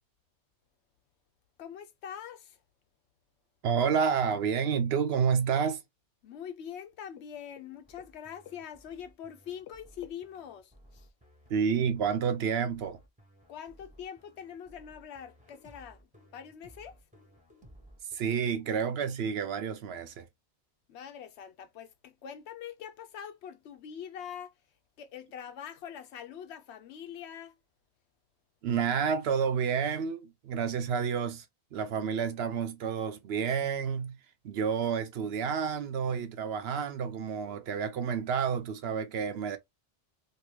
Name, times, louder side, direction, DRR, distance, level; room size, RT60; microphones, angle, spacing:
voice 1, 1.6-2.6 6.2-11.1 13.5-17.0 20.9-24.5 25.0-27.5, left 8 dB, 90° left, 0.9 m, -44 dB
voice 2, 3.6-5.8 11.5-13.0 18.1-20.3 28.6-31.4 31.7-34.2 34.4-39.6, right 6 dB, 75° right, 0.8 m, -29 dB
sound 1, 7.8-18.2, equal, 10° right, 0.8 m, -58 dB
2.8 x 2.7 x 3.1 m
omnidirectional pair, 1.1 m